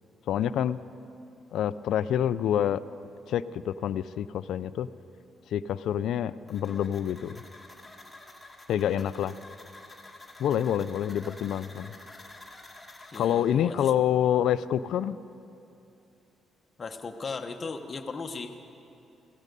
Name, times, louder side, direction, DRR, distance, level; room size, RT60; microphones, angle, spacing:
voice 1, 0.3-0.8 1.5-2.8 3.3-4.9 5.5-7.4 8.7-9.3 10.4-11.9 13.2-15.2, left 10 dB, 75° left, 16 dB, 0.4 m, -27 dB
sound 1, 6.5-13.6, left 2 dB, 10° left, 1.9 m, -49 dB
voice 2, 8.7-9.3 13.1-13.9 16.8-18.6, left 4 dB, 35° left, 5 dB, 1.0 m, -37 dB
15.5 x 15.0 x 5.3 m, 2.7 s
cardioid pair, 100°, 0 cm